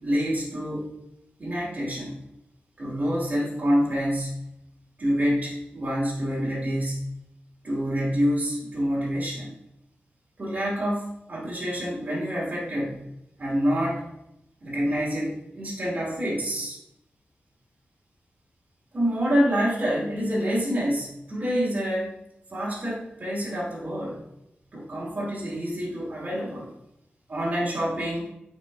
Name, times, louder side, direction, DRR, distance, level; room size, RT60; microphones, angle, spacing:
voice 1, 0.0-0.9 1.4-2.2 2.8-4.5 5.0-7.1 7.6-9.5 10.4-13.1 13.4-14.0 14.6-16.8 18.9-22.1 22.5-24.2 24.7-26.7 27.3-28.3, equal, 40° right, -7 dB, 2.7 m, -27 dB
9.2 x 5.1 x 2.6 m, 0.81 s
wide cardioid pair, 135°, 4 cm